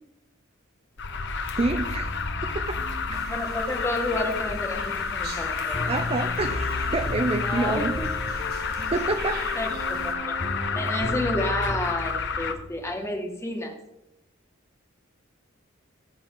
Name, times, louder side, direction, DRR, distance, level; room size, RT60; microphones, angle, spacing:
Alarm, 1.0-12.5, left 5 dB, 60° left, 1.0 m, -30 dB
sound 1, 1.0-13.1, left 1 dB, 45° left, 1.2 m, -35 dB
voice 1, 1.6-2.8 3.1-3.2 5.9-8.0 8.9-9.6, right 2 dB, 30° right, 6 dB, 0.6 m, -28 dB
sound 2, 3.1-10.1, right 2 dB, 50° right, 2.0 m, -41 dB
voice 2, 3.3-5.9 7.4-8.1 9.6-9.7 10.0-10.3 10.7-13.8, left 1 dB, 15° left, 2 dB, 2.0 m, -30 dB
19.0 x 6.8 x 3.9 m, 0.89 s
head